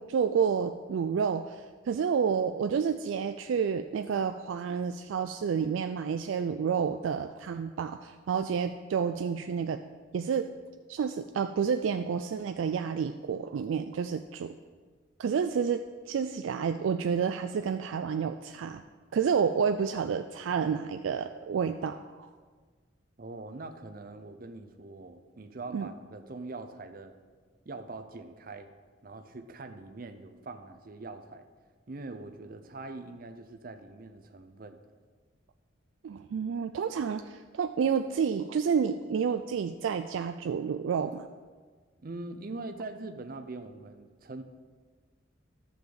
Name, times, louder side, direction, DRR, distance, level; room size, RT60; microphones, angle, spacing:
voice 1, 0.0-9.8 10.1-10.5 10.9-14.5 15.2-15.8 16.1-18.8 19.1-22.3 25.7-25.9 36.0-41.3, right 6 dB, 90° right, 8 dB, 0.3 m, -30 dB
voice 2, 23.2-27.1 27.7-28.7 29.0-31.5 31.9-34.8 42.0-44.4, right 3 dB, 50° right, 9 dB, 0.6 m, -43 dB
11.5 x 7.0 x 3.9 m, 1.5 s
head